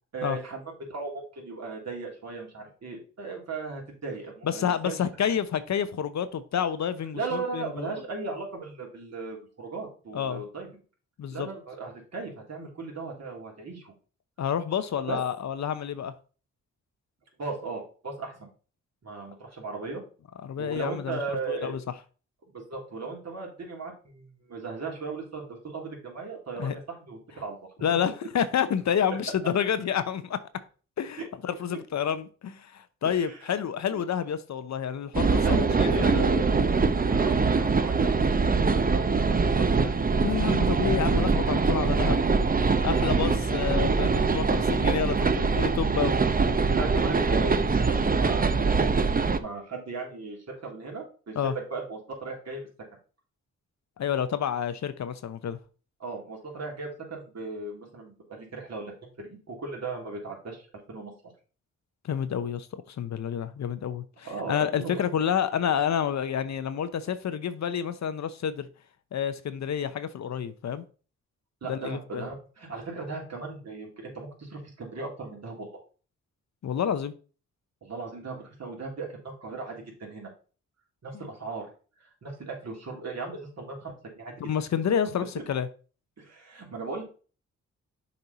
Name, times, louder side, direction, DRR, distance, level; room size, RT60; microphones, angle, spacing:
voice 1, 0.1-0.6 0.9-5.0 7.1-10.7 11.3-13.9 15.1-15.2 17.4-18.5 19.0-20.0 20.6-21.7 22.5-27.6 31.2-31.3 31.7-31.8 33.1-33.6 33.9-34.0 35.4-36.5 37.1-40.0 41.4-42.2 44.4-44.8 46.7-48.9 49.4-52.6 56.0-61.1 64.2-65.0 71.6-75.7 77.8-79.7 80.0-80.3 81.0-81.7 82.0-84.3 86.2-87.0, right 3 dB, 55° right, 3.1 m, -37 dB
voice 2, 4.4-7.9 10.1-10.4 11.2-11.5 14.4-16.1 20.4-21.2 21.5-21.8 26.6-26.7 27.8-30.4 31.0-36.3 40.2-42.1 42.8-46.2 51.4-51.5 54.0-55.6 62.0-68.7 69.1-70.8 71.7-72.3 76.6-77.1 84.4-85.7, left 8 dB, 60° left, 0.7 m, -29 dB
sound 1, 35.1-49.4, right 4 dB, 25° right, 0.7 m, -23 dB
6.8 x 4.4 x 4.1 m
cardioid pair, 60°, 32 cm